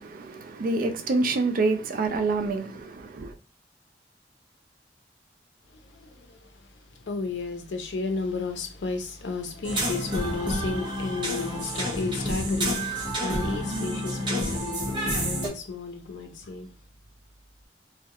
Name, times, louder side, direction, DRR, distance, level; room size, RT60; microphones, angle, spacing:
voice 1, 0.0-3.3, right 3 dB, 50° right, 0.4 m, -27 dB
voice 2, 5.7-16.8, left 3 dB, 90° left, 0.5 m, -33 dB
sound 1, 9.6-15.5, equal, 25° right, 0.8 m, -29 dB
2.3 x 2.1 x 2.8 m
head